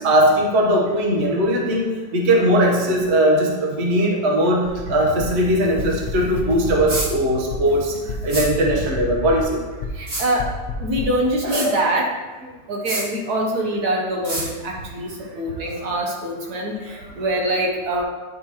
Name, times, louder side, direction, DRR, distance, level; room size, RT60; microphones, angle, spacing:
voice 1, 0.0-7.9 8.2-9.6 11.4-11.8, right 1 dB, 45° right, 0 dB, 1.1 m, -19 dB
sound 1, 4.7-10.0 10.4-11.0, left 5 dB, 80° left, 0.4 m, -30 dB
sound 2, 6.9-7.1 8.3-8.5 10.1-10.3 11.5-11.7 12.9-13.0 14.2-14.5, right 1 dB, 80° right, 3.3 m, -26 dB
voice 2, 10.0-10.5 10.8-12.1 12.7-18.0, right 1 dB, 60° right, 0 dB, 1.4 m, -24 dB
9.4 x 5.2 x 2.9 m, 1.2 s
omnidirectional pair, 2.0 m